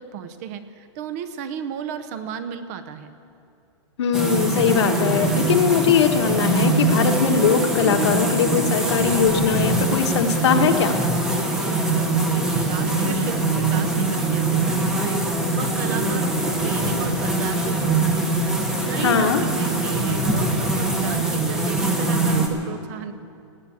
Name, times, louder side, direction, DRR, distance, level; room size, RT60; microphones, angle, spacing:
voice 1, 0.0-3.1 11.5-18.3 18.9-23.1, right 7 dB, 30° right, 11 dB, 0.7 m, -34 dB
voice 2, 4.0-11.0 18.9-19.4, left 7 dB, 60° left, 5 dB, 1.4 m, -20 dB
sound 1, 4.1-22.5, right 2 dB, 5° right, 1.0 m, -22 dB
17.5 x 9.3 x 8.5 m, 2.4 s
supercardioid pair, 170°, 16 cm